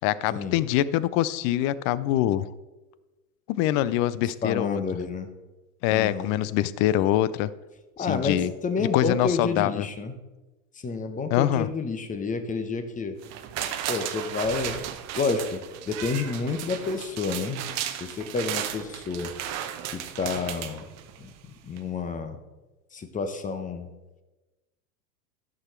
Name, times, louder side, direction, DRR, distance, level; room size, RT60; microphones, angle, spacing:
voice 1, 0.0-2.5 3.5-4.8 5.8-7.5 8.0-8.5 8.8-9.9 11.3-11.7, left 13 dB, 35° left, 18 dB, 0.4 m, -24 dB
voice 2, 4.4-5.3 5.9-6.3 8.0-10.1 10.8-13.2 13.9-14.8 15.1-17.7 18.0-19.3 19.9-20.9 21.2-21.3 21.6-22.4 22.9-23.9, left 4 dB, 15° left, 8 dB, 1.0 m, -29 dB
sound 1, 13.2-21.4 21.8-21.9, right 10 dB, 35° right, 0.8 m, -35 dB
11.5 x 6.3 x 4.4 m, 1.1 s
hypercardioid pair, 100°, 44 cm